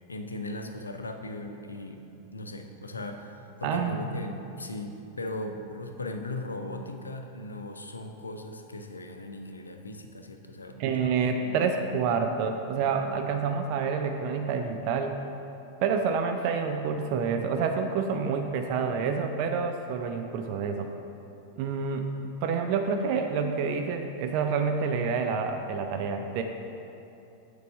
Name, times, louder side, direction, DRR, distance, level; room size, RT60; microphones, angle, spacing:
voice 1, 0.1-2.1 2.3-11.1 11.4-11.7, left 2 dB, 80° left, 5 dB, 0.5 m, -38 dB
voice 2, 3.6-4.1 10.8-15.2 15.8-20.9 21.6-22.1 22.4-26.4, right 5 dB, 45° right, 5 dB, 0.4 m, -28 dB
6.7 x 4.7 x 5.1 m, 2.8 s
figure-of-eight pair, 90°, 0 cm